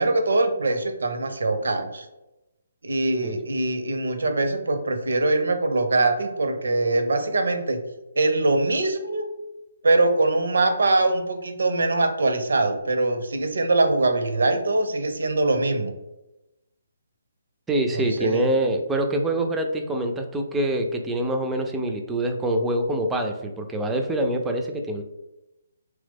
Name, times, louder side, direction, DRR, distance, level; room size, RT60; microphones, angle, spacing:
voice 1, 0.0-2.1 2.8-7.8 8.2-9.2 9.8-15.9 17.9-18.5, right 2 dB, 75° right, 7 dB, 0.5 m, -23 dB
voice 2, 17.7-25.0, right 1 dB, 10° right, 3 dB, 0.3 m, -25 dB
3.0 x 2.0 x 3.3 m, 0.97 s
hypercardioid pair, 145°, 0 cm